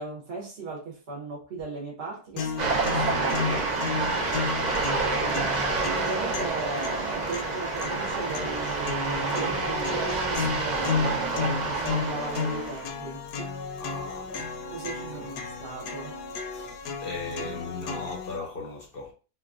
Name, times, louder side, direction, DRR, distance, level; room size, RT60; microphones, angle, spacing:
voice 1, 0.0-3.8 5.1-13.2 14.7-16.1, right 3 dB, 55° right, 0.8 m, -37 dB
sound 1, 2.4-18.4, left 5 dB, 75° left, 1.1 m, -33 dB
sound 2, 2.6-12.9, right 3 dB, 75° right, 0.4 m, -28 dB
voice 2, 4.7-5.1 13.8-14.6 15.1-15.4 16.5-19.1, left 3 dB, 55° left, 0.6 m, -38 dB
3.9 x 2.3 x 2.4 m
omnidirectional pair, 1.7 m